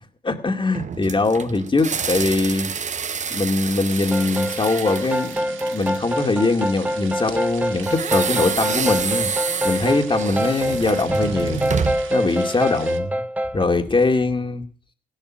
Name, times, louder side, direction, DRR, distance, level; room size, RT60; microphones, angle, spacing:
voice 1, 0.2-2.7 3.3-9.3 9.6-11.6 12.1-13.1 13.5-14.6, left 3 dB, 25° left, 5 dB, 2.3 m, -22 dB
sound 1, 0.7-6.1 7.8-12.2, right 6 dB, 35° right, 0.8 m, -28 dB
sound 2, 3.9-13.0, right 8 dB, 80° right, 1.7 m, -40 dB
sound 3, 4.1-13.6, equal, 5° right, 0.7 m, -25 dB
16.5 x 12.0 x 6.3 m, 0.42 s
cardioid pair, 90°, 20 cm